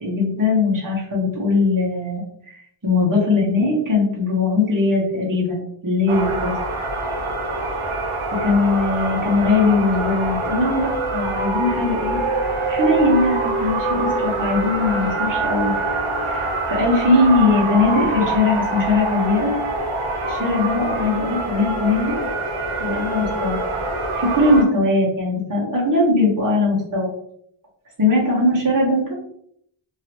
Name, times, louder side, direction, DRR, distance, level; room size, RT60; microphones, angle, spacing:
voice 1, 0.0-6.5 8.4-12.2 12.7-15.7 16.2-19.5 20.2-22.2 22.8-23.6 24.2-27.1 28.0-29.1, left 2 dB, 40° right, -5 dB, 1.3 m, -20 dB
sound 1, 6.1-24.6, right 2 dB, 85° right, 0.8 m, -25 dB
3.0 x 2.8 x 2.9 m, 0.69 s
wide cardioid pair, 80°, 48 cm